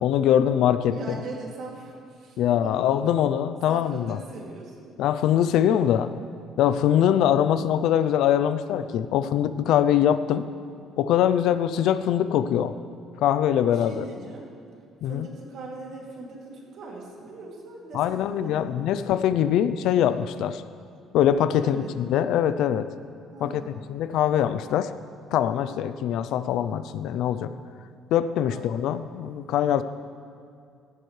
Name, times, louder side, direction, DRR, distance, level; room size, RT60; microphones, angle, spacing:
voice 1, 0.0-1.2 2.4-4.2 5.0-6.1 6.6-10.5 11.0-12.8 13.2-14.1 15.0-15.3 17.9-20.6 21.1-22.9 23.4-23.6 23.9-24.9 25.3-27.5 28.1-29.8, left 10 dB, 65° left, 13 dB, 0.4 m, -23 dB
voice 2, 0.9-2.9 3.7-5.0 13.7-14.5 15.0-18.9 21.5-22.0 23.3-23.8 28.4-28.8, right 3 dB, 50° right, -2 dB, 2.6 m, -40 dB
17.0 x 14.5 x 3.2 m, 2.3 s
cardioid pair, 180°, 0 cm